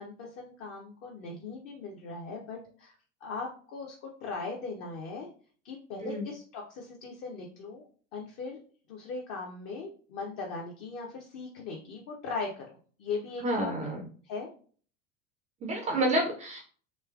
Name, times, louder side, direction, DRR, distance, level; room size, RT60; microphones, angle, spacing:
voice 1, 0.0-2.9 3.2-5.3 5.6-7.9 8.1-8.6 8.9-13.7 14.2-14.5, left 4 dB, 40° left, 0 dB, 0.6 m, -39 dB
voice 2, 13.4-14.1 15.6-16.6, right 1 dB, 20° right, 2 dB, 0.4 m, -29 dB
3.1 x 2.8 x 2.3 m, 0.43 s
figure-of-eight pair, 75°, 38 cm